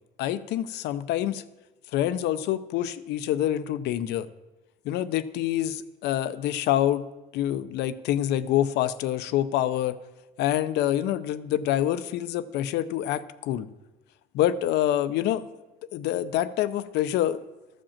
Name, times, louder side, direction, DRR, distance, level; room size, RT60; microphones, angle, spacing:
voice 1, 0.2-1.4 1.9-4.3 4.9-7.1 7.3-10.0 10.4-13.7 14.3-15.5 15.9-17.4, left 12 dB, 80° left, 13 dB, 0.6 m, -26 dB
13.5 x 5.2 x 7.2 m, 1.1 s
cardioid pair, 110°, 17 cm